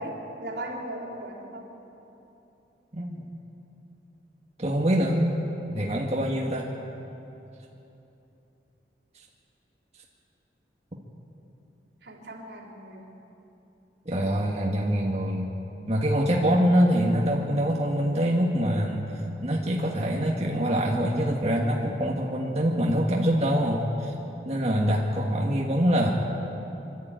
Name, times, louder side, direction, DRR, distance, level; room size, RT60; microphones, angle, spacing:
voice 1, 0.0-1.7 12.0-13.1, right 1 dB, 75° right, -1 dB, 3.6 m, -37 dB
voice 2, 2.9-3.2 4.6-5.4 5.7-6.7 14.1-15.5 15.9-24.1 24.5-26.1, equal, 35° right, -3 dB, 1.7 m, -24 dB
25.5 x 12.5 x 9.0 m, 3.0 s
head